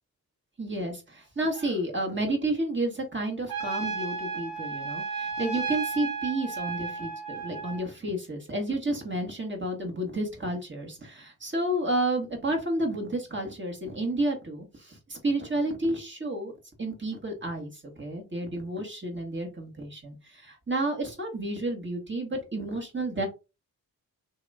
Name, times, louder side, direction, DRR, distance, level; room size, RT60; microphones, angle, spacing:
voice 1, 0.6-16.5 16.8-23.3, right 1 dB, 30° right, 1 dB, 1.4 m, -31 dB
Trumpet, 3.5-7.8, right 4 dB, 65° right, 1.4 m, -33 dB
2.8 x 2.6 x 3.3 m, 0.28 s
cardioid pair, 50°, 39 cm